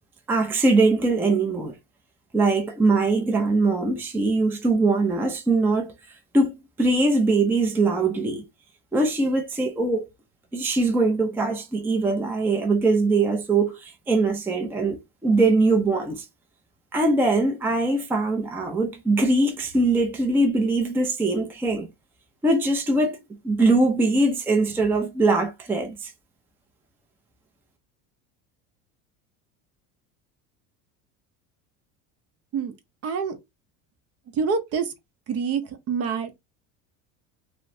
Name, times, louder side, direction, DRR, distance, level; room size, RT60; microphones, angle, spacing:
voice 1, 0.3-1.7 2.3-5.9 6.3-8.4 8.9-10.1 10.5-16.2 16.9-21.9 22.4-23.2 23.4-26.1, right 2 dB, 5° right, 0.4 m, -22 dB
voice 2, 33.0-33.4 34.4-34.9 35.3-35.6 35.9-36.4, right 6 dB, 45° right, 0.7 m, -26 dB
3.0 x 2.1 x 2.6 m
supercardioid pair, 120°, 36 cm